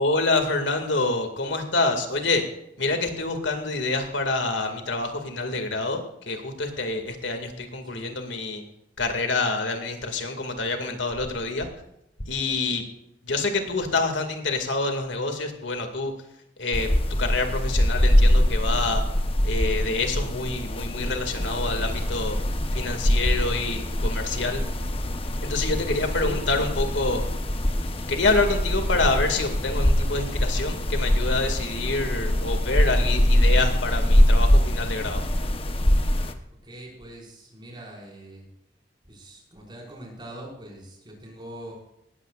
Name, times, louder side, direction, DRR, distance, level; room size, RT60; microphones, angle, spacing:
voice 1, 0.0-2.4 2.8-8.6 9.0-11.7 12.3-12.8 13.2-16.1 16.6-16.9 17.2-19.0 19.4-22.4 22.7-24.6 25.4-27.2 28.1-35.2, left 3 dB, 85° left, 5 dB, 2.3 m, -27 dB
voice 2, 7.8-8.2 25.8-26.5 36.6-38.5 39.0-41.7, right 1 dB, 25° right, -2 dB, 5.4 m, -43 dB
sound 1, 16.7-36.3, equal, 30° left, 1.0 m, -23 dB
19.0 x 15.0 x 2.5 m, 0.82 s
head